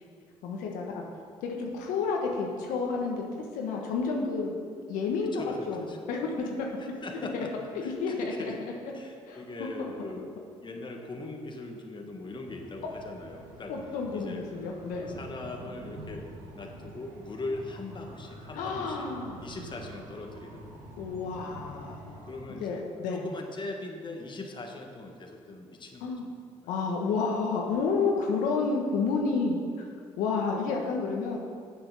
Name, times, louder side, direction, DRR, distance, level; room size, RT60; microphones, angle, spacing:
voice 1, 0.4-1.0 1.4-3.2 3.5-4.6 4.9-6.7 7.3-7.5 7.7-8.5 8.8-8.9 9.3-9.4 9.8-9.9 12.8-12.9 13.7-15.2 18.5-19.4 21.0-22.2 22.6-23.3 26.0-26.2 26.7-29.8 30.2-31.4, left 4 dB, 80° left, 0 dB, 1.2 m, -30 dB
voice 2, 5.3-6.0 6.8-7.5 7.8-8.5 8.9-10.3 10.6-13.7 14.1-14.5 15.1-16.3 16.5-19.1 19.4-20.8 22.3-26.1 26.6-26.7 30.7-30.9, left 2 dB, 35° left, 2 dB, 1.5 m, -40 dB
sound 1, 12.1-22.5, right 1 dB, 80° right, 1.6 m, -47 dB
7.8 x 7.6 x 6.3 m, 2.2 s
supercardioid pair, 65°, 14 cm